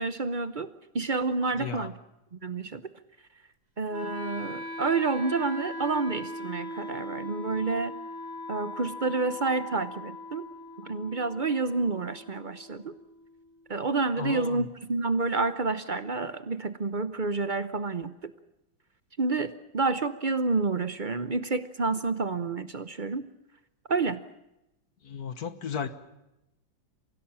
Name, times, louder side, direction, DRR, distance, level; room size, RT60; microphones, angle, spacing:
voice 1, 0.0-2.0 2.3-2.8 3.8-8.0 8.5-10.5 10.8-12.9 13.7-18.3 19.2-23.2 23.9-24.2, right 3 dB, 55° right, 13 dB, 0.5 m, -29 dB
voice 2, 1.4-1.9 14.2-14.6 25.0-25.9, left 7 dB, 55° left, 11 dB, 1.7 m, -34 dB
Wind instrument woodwind instrument, 3.9-13.9, left 1 dB, 20° right, 1.7 m, -40 dB
24.5 x 16.5 x 8.8 m, 0.91 s
omnidirectional pair, 2.2 m